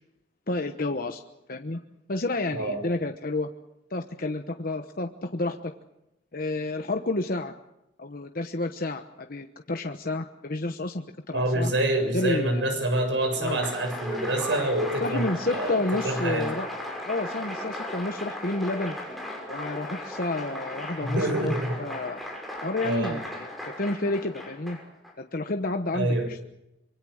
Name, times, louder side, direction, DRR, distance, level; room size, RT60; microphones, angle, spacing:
voice 1, 0.5-1.2 1.5-1.8 2.1-3.5 3.9-5.7 6.3-7.5 8.0-11.7 12.1-12.6 13.4-13.6 15.0-16.7 17.0-19.0 19.5-22.2 22.6-23.5 23.8-24.8 25.2-26.4, left 2 dB, 50° left, 6 dB, 1.1 m, -30 dB
voice 2, 11.3-16.5 21.0-21.8 22.8-23.2 25.9-26.3, right 1 dB, 80° right, 5 dB, 6.8 m, -27 dB
Applause, 13.2-25.1, left 1 dB, ahead, 5.9 m, -36 dB
25.5 x 23.5 x 6.5 m, 0.90 s
head